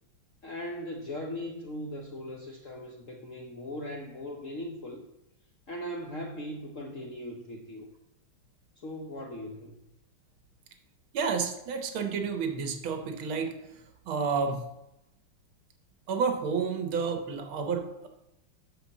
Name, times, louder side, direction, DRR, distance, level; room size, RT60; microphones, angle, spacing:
voice 1, 0.4-5.0 5.7-7.9 8.8-9.8, left 1 dB, 55° left, 1 dB, 0.8 m, -39 dB
voice 2, 11.1-13.6 14.1-14.6 16.1-18.1, right 5 dB, 75° right, 5 dB, 1.8 m, -30 dB
6.0 x 5.8 x 7.1 m, 0.88 s
omnidirectional pair, 2.3 m